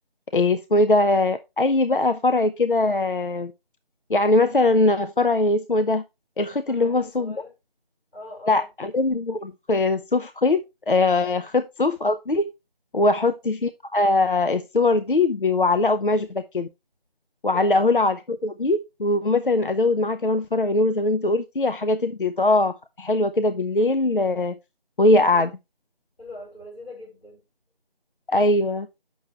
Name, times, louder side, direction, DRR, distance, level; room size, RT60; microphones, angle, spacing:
voice 1, 0.3-3.5 4.1-6.0 6.4-7.3 8.5-10.6 10.9-12.5 12.9-16.7 17.4-24.5 25.0-25.5 28.3-28.9, left 2 dB, 60° left, 0.6 m, -21 dB
voice 2, 6.7-7.5 8.1-8.7 11.3-11.5 13.0-13.2 17.4-17.9 25.1-25.5 26.2-27.4, left 1 dB, 90° left, 4.9 m, -41 dB
7.9 x 6.3 x 3.2 m
figure-of-eight pair, 180°, 30 cm